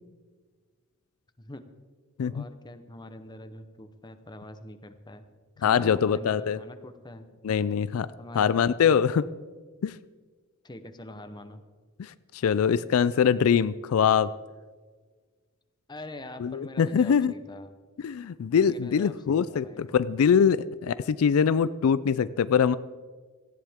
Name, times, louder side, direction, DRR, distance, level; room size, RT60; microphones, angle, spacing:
voice 1, 2.2-5.3 5.6-7.4 8.2-9.1 10.6-11.6 15.9-17.7 18.6-20.0, left 1 dB, 20° left, 9 dB, 0.8 m, -44 dB
voice 2, 5.6-6.6 7.4-8.1 8.3-9.2 9.8-9.9 12.0-14.3 16.4-17.3 18.0-22.8, left 7 dB, 75° left, 16 dB, 0.4 m, -23 dB
17.5 x 14.5 x 3.6 m, 1.5 s
head